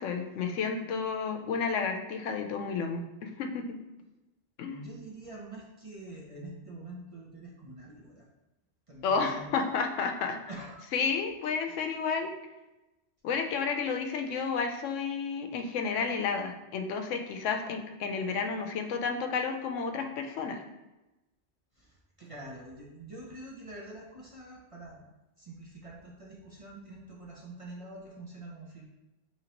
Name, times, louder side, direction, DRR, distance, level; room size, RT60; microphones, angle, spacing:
voice 1, 0.0-3.6 4.6-4.8 9.0-10.4 10.9-12.3 13.2-20.6, left 5 dB, 90° left, 5 dB, 0.9 m, -31 dB
voice 2, 4.6-8.3 8.9-9.5 10.5-10.9 11.7-11.8 21.7-25.1 25.4-28.9, right 1 dB, 35° right, -4 dB, 0.6 m, -46 dB
5.1 x 3.1 x 2.9 m, 1.0 s
omnidirectional pair, 1.2 m